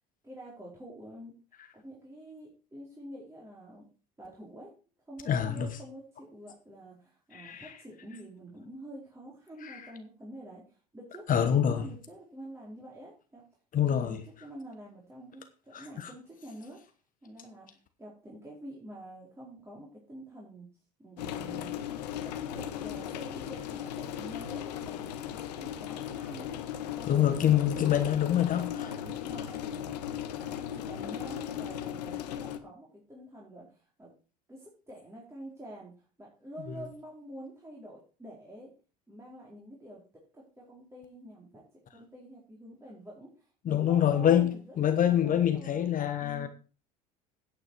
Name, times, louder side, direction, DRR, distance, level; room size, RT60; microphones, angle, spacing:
voice 1, 0.2-1.3 1.7-3.8 4.2-4.7 5.1-13.4 13.9-16.8 17.2-17.7 18.0-20.7 21.0-21.8 22.5-26.5 26.9-34.1 34.5-38.7 39.1-40.0 40.3-41.6 41.9-44.8 45.1-46.5, right 1 dB, 15° right, 4.4 m, -47 dB
voice 2, 5.3-5.7 7.3-7.8 9.6-9.9 11.3-11.9 13.7-14.2 15.7-16.1 27.1-28.9 36.7-36.8 43.6-46.5, left 10 dB, 40° left, 1.3 m, -26 dB
sound 1, 21.2-32.6, left 10 dB, 85° left, 1.2 m, -37 dB
9.5 x 8.8 x 4.7 m
hypercardioid pair, 85°, 20 cm